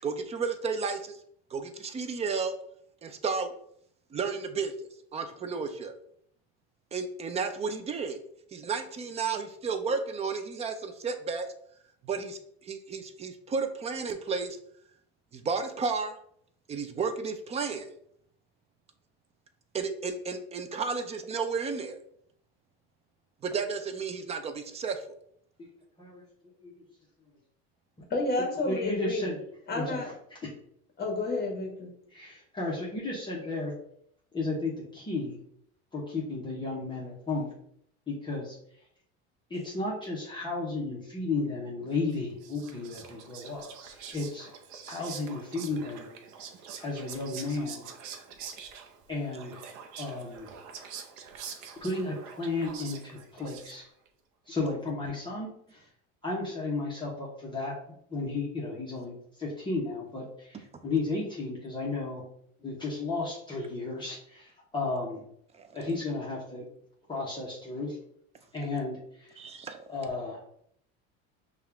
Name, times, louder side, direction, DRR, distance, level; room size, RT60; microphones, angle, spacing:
voice 1, 0.0-1.2 1.5-2.5 3.0-3.5 4.1-6.0 6.9-8.2 8.5-11.5 12.0-14.6 15.3-16.2 16.7-17.9 19.7-22.0 23.4-25.0 65.5-65.7 69.4-69.8, right 5 dB, 20° right, 9 dB, 0.3 m, -32 dB
voice 2, 28.1-29.3 29.7-30.1 31.0-31.9, left 2 dB, 30° left, 1 dB, 1.3 m, -30 dB
voice 3, 28.6-29.4 29.7-30.0 32.1-33.7 34.3-35.4 35.9-37.5 38.1-38.5 39.5-44.5 44.9-46.1 46.8-47.8 49.1-49.6 50.0-50.5 51.8-53.8 54.5-55.8 56.2-57.7 58.1-62.2 62.6-65.2 65.7-66.6 67.1-68.0 68.5-69.4 69.9-70.4, left 3 dB, 15° left, -6 dB, 0.9 m, -33 dB
Whispering, 42.1-54.1, right 7 dB, 60° right, 0.7 m, -45 dB
5.4 x 2.4 x 3.4 m, 0.68 s
cardioid pair, 135°, 33 cm